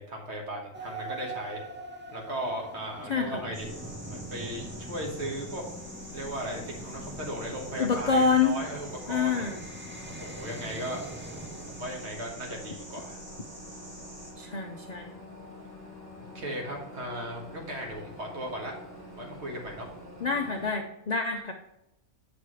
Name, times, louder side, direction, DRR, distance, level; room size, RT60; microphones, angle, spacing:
voice 1, 0.0-1.6 2.1-3.7 4.1-5.6 6.1-9.5 10.0-11.0 11.7-13.2 16.3-18.8 19.1-19.9, right 1 dB, 55° right, 0 dB, 1.6 m, -37 dB
sound 1, 0.7-12.1, right 2 dB, 15° right, 0.4 m, -44 dB
voice 2, 3.1-3.5 7.8-8.6 9.1-9.6 14.4-15.1 20.2-21.5, left 5 dB, 80° left, 4 dB, 0.3 m, -27 dB
sound 2, 3.5-14.3, equal, 80° right, 2.7 m, -46 dB
sound 3, 3.6-20.7, left 1 dB, 15° left, 2.7 m, -46 dB
8.2 x 6.1 x 3.1 m, 0.89 s
omnidirectional pair, 1.4 m